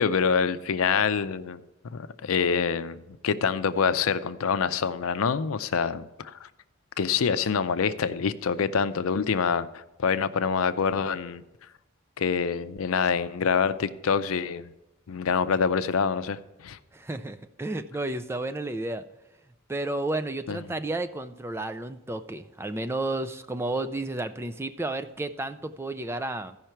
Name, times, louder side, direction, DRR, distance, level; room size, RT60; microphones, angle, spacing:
voice 1, 0.0-1.6 1.9-6.5 7.0-11.4 12.2-14.7 15.1-16.8 20.5-20.6, left 6 dB, 90° left, 13 dB, 0.5 m, -26 dB
voice 2, 16.9-19.0 19.7-26.6, right 2 dB, 10° right, 10 dB, 0.3 m, -32 dB
14.5 x 5.6 x 4.5 m, 0.97 s
head